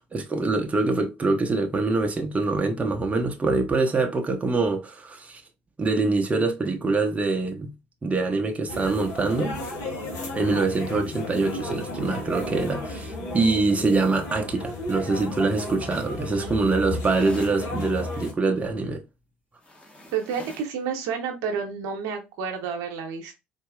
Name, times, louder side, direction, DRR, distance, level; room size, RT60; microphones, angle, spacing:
voice 1, 0.1-5.4 5.8-7.7 8.0-9.5 10.3-19.0, right 3 dB, 25° right, 0.8 m, -24 dB
sound 1, 8.7-18.3, left 2 dB, 60° left, 1.3 m, -33 dB
sound 2, 17.0-17.6 19.6-20.8, left 1 dB, 20° left, 1.3 m, -44 dB
voice 2, 20.1-23.3, right 6 dB, 65° right, 0.9 m, -30 dB
4.1 x 2.7 x 2.4 m
hypercardioid pair, 60°, 6 cm